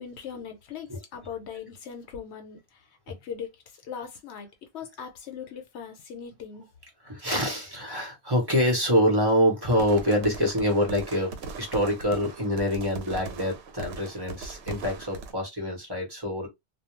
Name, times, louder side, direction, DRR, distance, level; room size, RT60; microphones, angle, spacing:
voice 1, 0.0-3.5 3.9-4.5 4.7-6.7, left 7 dB, 85° left, 0.9 m, -40 dB
voice 2, 7.0-16.5, equal, 25° right, 0.9 m, -25 dB
sound 1, 9.8-15.3, right 4 dB, 75° right, 0.9 m, -40 dB
2.3 x 2.1 x 3.1 m
omnidirectional pair, 1.1 m